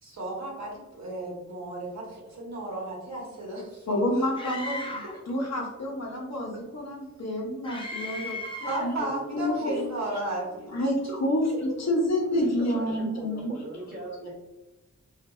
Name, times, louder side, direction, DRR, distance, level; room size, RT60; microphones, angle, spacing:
voice 1, 0.0-3.9 8.6-10.9, right 2 dB, 60° right, -4 dB, 1.0 m, -34 dB
voice 2, 3.9-5.0 5.3-9.7 10.7-13.5, left 1 dB, 60° left, -2 dB, 0.8 m, -28 dB
Screaming, 4.4-5.2 7.6-9.0, left 1 dB, 15° left, 0.5 m, -36 dB
voice 3, 12.1-14.3, right 2 dB, 30° right, -4 dB, 0.9 m, -40 dB
2.6 x 2.5 x 2.2 m, 1.1 s
wide cardioid pair, 80°, 31 cm